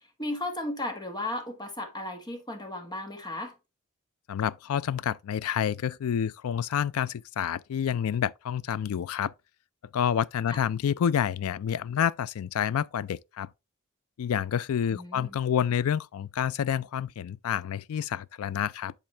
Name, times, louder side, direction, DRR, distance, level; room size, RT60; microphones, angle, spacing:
voice 1, 0.2-3.5 10.5-10.6 14.9-15.4, left 1 dB, 20° left, 1.5 m, -35 dB
voice 2, 4.3-9.3 9.9-13.5 14.2-18.9, left 8 dB, 75° left, 0.3 m, -28 dB
10.5 x 4.1 x 3.3 m
head